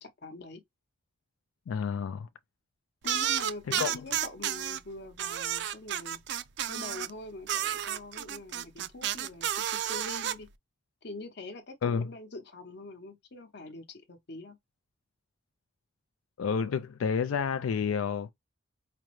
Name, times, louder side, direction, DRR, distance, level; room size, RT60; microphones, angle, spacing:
voice 1, 0.0-0.6 3.0-6.2 6.7-10.5 11.0-14.6, left 2 dB, 55° left, 0.8 m, -44 dB
voice 2, 1.7-2.3 3.8-4.1 11.8-12.1 16.4-18.3, left 6 dB, 90° left, 0.4 m, -30 dB
sound 1, 3.0-4.8 5.2-7.1 7.5-10.3, right 10 dB, 55° right, 0.3 m, -31 dB
5.0 x 2.0 x 3.0 m
head